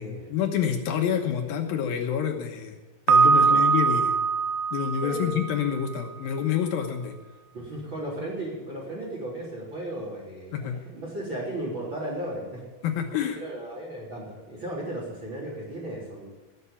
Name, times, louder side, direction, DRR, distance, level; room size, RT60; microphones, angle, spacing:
voice 1, 0.0-2.8 3.1-4.2 4.7-7.2 10.5-10.8 12.8-13.4, left 8 dB, 80° left, 3 dB, 3.0 m, -28 dB
Piano, 3.1-6.0, right 5 dB, 75° right, 2.5 m, -22 dB
voice 2, 3.3-3.7 5.0-5.4 7.5-12.6 13.4-16.3, right 1 dB, 35° right, -3 dB, 4.2 m, -35 dB
18.5 x 8.0 x 8.4 m, 1.2 s
omnidirectional pair, 4.1 m